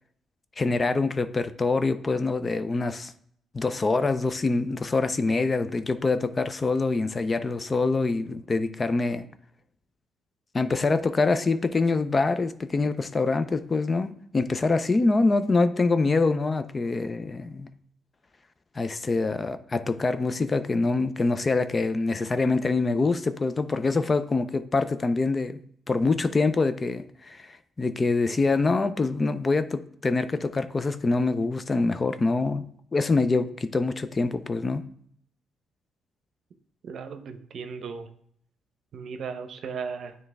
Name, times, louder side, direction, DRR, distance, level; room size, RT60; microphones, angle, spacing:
voice 1, 0.6-3.1 3.5-9.3 10.5-17.7 18.8-25.6 25.9-32.6 32.9-34.8, left 3 dB, 30° left, 0.4 m, -25 dB
voice 2, 36.8-38.1 38.9-40.2, right 5 dB, 60° right, 0.7 m, -36 dB
9.1 x 3.2 x 3.4 m
cardioid pair, 90°, 0 cm